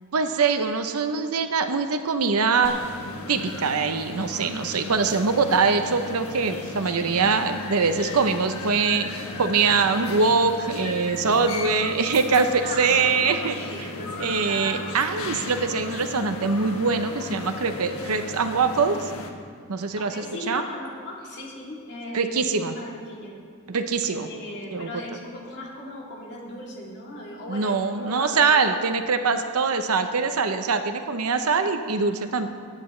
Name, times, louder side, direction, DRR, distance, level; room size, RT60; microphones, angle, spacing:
voice 1, 0.1-2.7 3.3-9.1 9.4-13.6 14.2-19.1 19.7-20.6 22.1-22.7 23.7-24.3 24.7-24.9 27.5-32.5, right 4 dB, 80° right, 8 dB, 0.7 m, -23 dB
sound 1, 2.6-19.3, left 3 dB, 70° left, 1.3 m, -36 dB
voice 2, 12.6-14.9 20.0-23.3 24.0-28.5, left 1 dB, 55° left, -4 dB, 2.9 m, -37 dB
23.0 x 9.2 x 3.2 m, 2.1 s
head